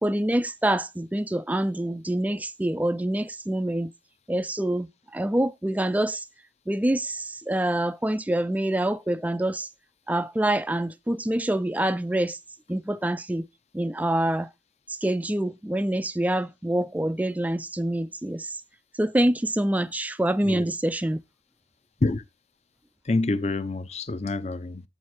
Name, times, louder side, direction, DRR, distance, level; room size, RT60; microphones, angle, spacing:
voice 1, 0.0-3.9 4.3-6.2 6.7-9.7 10.1-12.4 12.7-13.4 13.7-14.5 15.0-18.6 19.0-21.2, right 1 dB, 10° right, 0.3 m, -26 dB
voice 2, 23.0-24.8, left 2 dB, 35° left, 0.5 m, -27 dB
8.1 x 4.4 x 4.7 m
head